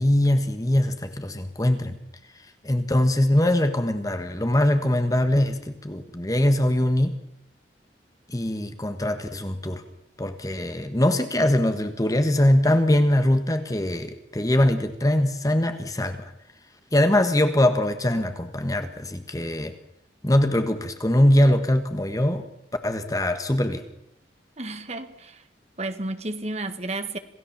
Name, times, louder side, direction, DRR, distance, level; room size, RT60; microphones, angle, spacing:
voice 1, 0.0-2.0 2.6-7.2 8.3-9.8 10.2-16.3 16.9-19.7 20.2-22.4 22.8-23.8, left 1 dB, 20° left, 8 dB, 1.5 m, -22 dB
voice 2, 24.6-25.4 25.8-27.2, right 2 dB, 35° right, 9 dB, 1.8 m, -32 dB
27.0 x 17.0 x 7.3 m, 0.75 s
head